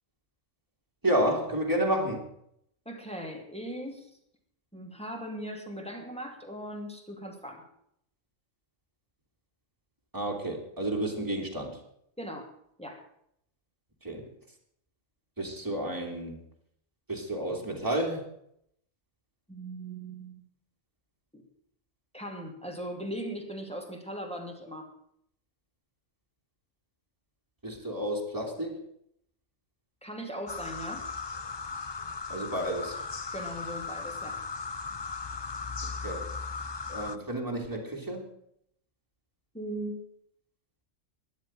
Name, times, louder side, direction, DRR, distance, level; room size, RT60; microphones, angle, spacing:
voice 1, 1.0-2.2 10.1-11.8 14.0-14.3 15.4-16.4 17.1-18.3 27.6-28.8 32.3-33.0 35.9-36.4 36.9-38.3, right 1 dB, 15° right, 1 dB, 2.9 m, -31 dB
voice 2, 2.8-4.1 4.7-7.7 12.2-12.5 12.8-13.0 19.5-20.4 21.3-21.4 22.1-24.9 30.0-31.1 33.3-34.4 39.5-40.0, right 1 dB, 5° left, 2 dB, 2.6 m, -39 dB
sound 1, 30.5-37.2, left 4 dB, 35° left, 0.4 m, -37 dB
13.0 x 10.5 x 7.8 m, 0.72 s
omnidirectional pair, 1.4 m